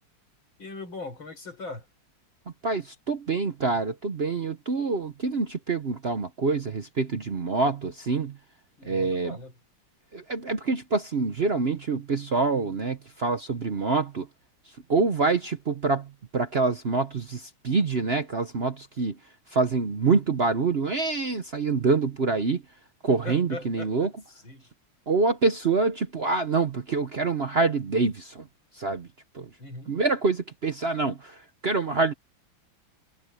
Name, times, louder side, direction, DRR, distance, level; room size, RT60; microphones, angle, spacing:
voice 1, 0.6-1.9 8.8-9.5 23.2-24.1 24.4-24.7 29.6-29.9, left 3 dB, 85° left, 6.3 m, -40 dB
voice 2, 2.6-8.4 8.8-9.4 10.1-14.3 14.9-19.2 19.5-22.6 23.0-24.1 25.1-28.5 28.7-29.1 29.3-29.5 29.9-32.1, right 4 dB, 45° right, 0.9 m, -26 dB
omnidirectional pair, 2.1 m